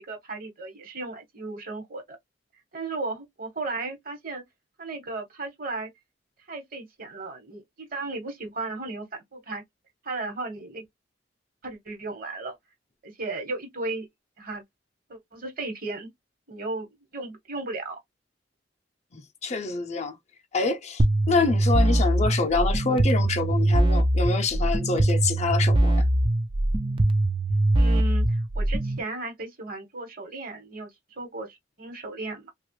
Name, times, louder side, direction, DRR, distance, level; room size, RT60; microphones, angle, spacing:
voice 1, 0.0-2.2 2.7-4.4 4.8-5.9 6.5-9.6 10.0-10.8 11.6-12.6 13.0-14.1 14.4-14.6 15.1-16.1 16.5-18.0 27.8-30.9 31.2-32.5, right 3 dB, 55° right, 1.2 m, -35 dB
voice 2, 19.1-20.2 20.5-26.1, left 4 dB, 40° left, 0.5 m, -26 dB
sound 1, 21.0-29.0, right 1 dB, 30° right, 0.4 m, -22 dB
3.0 x 2.3 x 3.0 m
head